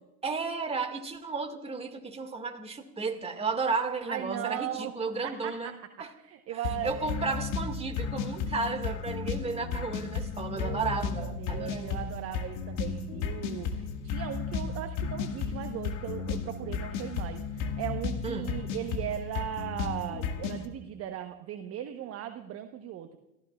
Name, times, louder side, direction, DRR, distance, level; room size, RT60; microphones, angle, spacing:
voice 1, 0.2-5.7 6.0-6.1 6.5-12.0 18.2-18.7, right 4 dB, 15° right, 5 dB, 1.9 m, -33 dB
voice 2, 4.1-4.9 5.2-5.7 6.2-7.1 10.6-23.2, right 11 dB, 30° right, 7 dB, 1.0 m, -38 dB
sound 1, 6.6-20.7, left 6 dB, 50° left, 1.8 m, -34 dB
30.0 x 14.5 x 2.4 m, 0.94 s
hypercardioid pair, 95°, 46 cm